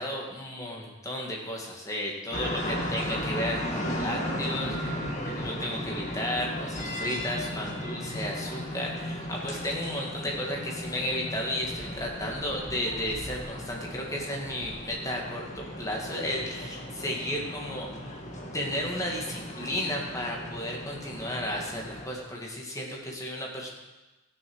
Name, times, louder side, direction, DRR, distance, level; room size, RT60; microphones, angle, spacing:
voice 1, 0.0-18.1 18.5-23.7, left 1 dB, 15° left, -1 dB, 2.2 m, -33 dB
sound 1, 2.3-22.1, equal, 35° left, 1.7 m, -36 dB
15.0 x 7.1 x 6.3 m, 1.1 s
head